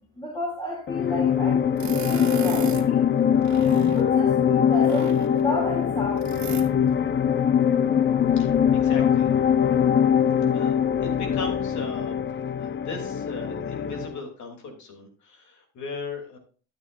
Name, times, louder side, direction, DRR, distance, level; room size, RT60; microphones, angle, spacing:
voice 1, 0.2-3.1 4.0-6.3, left 1 dB, 15° left, -3 dB, 3.0 m, -32 dB
sound 1, 0.9-14.2, left 8 dB, 40° left, 0.6 m, -22 dB
sound 2, 1.8-2.9 3.4-4.1 4.7-5.5 6.2-6.7, right 6 dB, 65° right, 1.8 m, -35 dB
voice 2, 8.4-9.3 10.5-10.7 11.0-12.2 12.6-16.4, left 4 dB, 70° left, 2 dB, 3.2 m, -37 dB
13.5 x 8.8 x 2.6 m, 0.39 s
cardioid pair, 90°, 30 cm